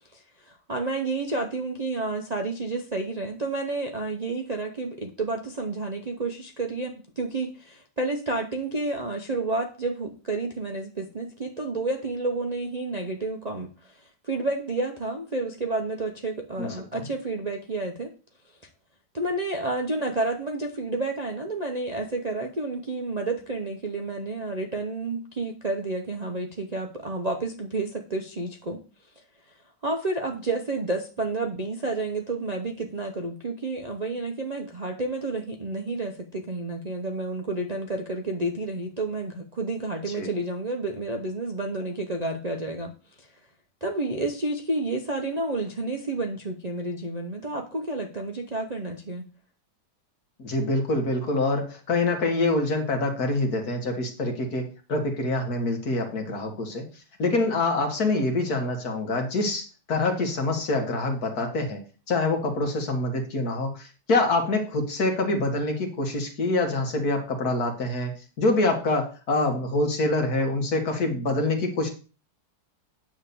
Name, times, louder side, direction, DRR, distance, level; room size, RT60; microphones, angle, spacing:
voice 1, 0.1-18.1 19.1-28.8 29.8-42.9 43.2-43.3 43.8-49.2, right 2 dB, 35° right, 1 dB, 0.6 m, -30 dB
voice 2, 16.6-17.1 40.2-40.3 50.4-56.8 57.2-61.8 62.1-71.9, left 2 dB, 60° left, 3 dB, 2.1 m, -26 dB
9.2 x 3.6 x 6.9 m, 0.35 s
omnidirectional pair, 1.9 m